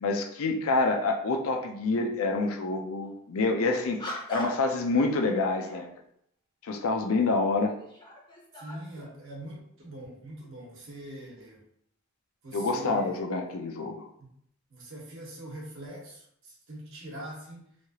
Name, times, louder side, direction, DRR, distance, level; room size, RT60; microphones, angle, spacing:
voice 1, 0.0-5.9 6.6-7.7 12.5-14.1, left 3 dB, 75° left, 3 dB, 0.5 m, -27 dB
sound 1, 3.0-3.2 4.0-4.8 5.3-5.9 6.9-7.0 7.6-9.2, equal, 20° left, 0.6 m, -41 dB
voice 2, 8.5-11.6 12.4-13.2 14.2-14.3 14.7-17.7, right 1 dB, 65° right, -4 dB, 1.1 m, -43 dB
3.1 x 2.3 x 2.8 m, 0.70 s
head